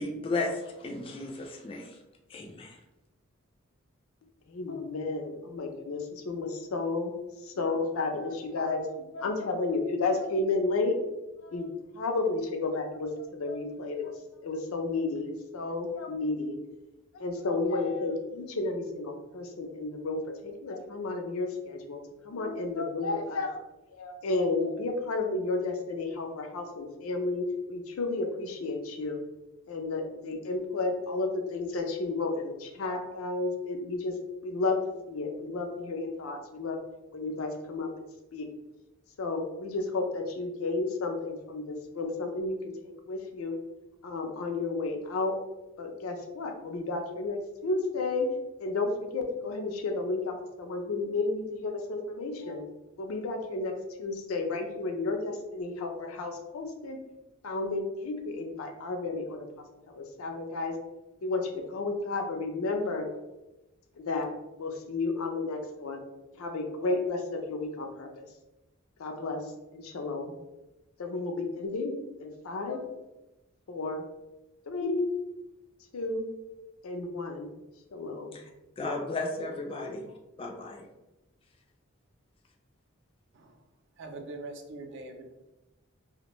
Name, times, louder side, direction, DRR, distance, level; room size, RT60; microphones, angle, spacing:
voice 1, 0.0-2.0 2.3-2.8 78.3-78.5 78.8-80.0 80.4-80.8, left 2 dB, 25° left, 1 dB, 0.3 m, -34 dB
voice 2, 4.5-7.1 7.4-10.9 11.4-11.7 11.9-14.1 14.4-16.6 17.1-23.7 24.0-29.2 29.7-34.1 34.4-34.8 35.1-36.8 37.1-37.9 38.3-38.5 39.2-43.5 44.0-45.3 45.8-48.3 48.6-52.6 53.0-53.7 54.0-57.0 57.4-59.4 59.9-60.7 61.2-63.1 64.0-64.3 64.6-66.0 66.4-68.3 69.0-69.4 69.7-70.3 71.0-72.8 73.7-74.0 74.7-75.0 75.9-76.2 76.8-77.5 77.9-78.4, left 3 dB, 90° left, 4 dB, 0.5 m, -32 dB
voice 3, 84.0-85.3, right 2 dB, 60° right, 4 dB, 0.4 m, -42 dB
2.5 x 2.1 x 2.9 m, 0.99 s
head